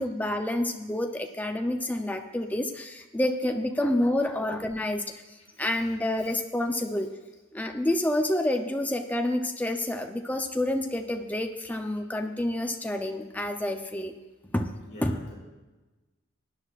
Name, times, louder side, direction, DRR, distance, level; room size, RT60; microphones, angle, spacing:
voice 1, 0.0-5.0 5.6-7.1 7.5-14.1 14.5-14.7 15.0-15.2, left 1 dB, 10° left, 4 dB, 0.6 m, -28 dB
voice 2, 5.6-5.9 14.8-15.3, left 1 dB, 40° left, -5 dB, 3.8 m, -47 dB
19.0 x 9.7 x 2.5 m, 1.2 s
head